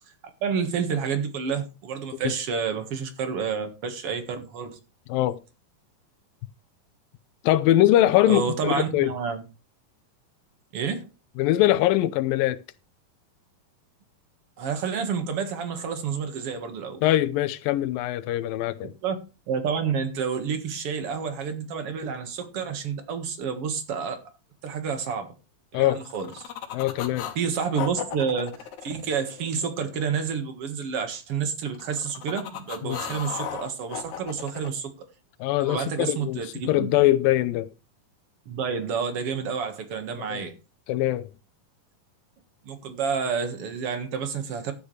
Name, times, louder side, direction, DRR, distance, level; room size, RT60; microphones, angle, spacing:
voice 1, 0.4-4.8 8.3-9.4 10.7-11.1 14.6-17.0 19.0-19.2 19.5-24.2 24.6-25.3 25.7-26.4 27.4-34.9 35.6-36.9 38.5-40.6 42.6-44.7, right 6 dB, 50° right, 2.1 m, -29 dB
voice 2, 7.4-9.1 11.4-12.6 17.0-18.9 25.7-26.0 26.7-27.3 32.8-33.0 35.4-37.7 40.3-40.4 40.9-41.3, left 14 dB, 80° left, 2.4 m, -22 dB
sound 1, 25.9-27.4 27.7-29.9 31.7-34.7, left 9 dB, 60° left, 2.6 m, -36 dB
13.0 x 9.5 x 3.3 m
omnidirectional pair, 4.1 m